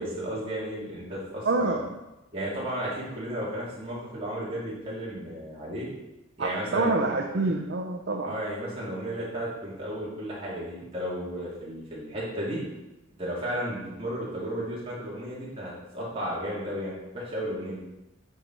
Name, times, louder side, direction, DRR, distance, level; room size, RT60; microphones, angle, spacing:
voice 1, 0.0-1.8 2.3-5.9 6.4-7.1 8.2-12.6 13.2-17.8, equal, 30° right, -6 dB, 2.4 m, -33 dB
voice 2, 1.4-1.9 6.4-8.3, right 3 dB, 55° right, 2 dB, 0.6 m, -27 dB
9.1 x 4.3 x 4.5 m, 0.98 s
head